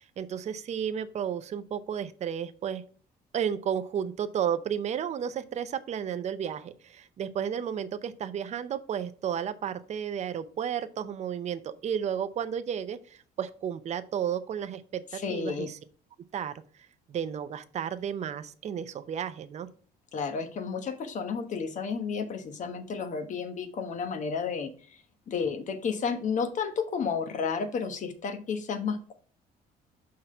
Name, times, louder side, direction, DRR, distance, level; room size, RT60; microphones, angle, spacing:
voice 1, 0.0-2.8 3.3-15.8 16.3-16.5 17.1-19.7, right 8 dB, 40° right, 11 dB, 0.6 m, -33 dB
voice 2, 15.2-15.7 20.1-24.7 25.3-29.1, left 5 dB, 45° left, 8 dB, 1.1 m, -31 dB
5.8 x 3.8 x 5.5 m, 0.43 s
cardioid pair, 110°, 17 cm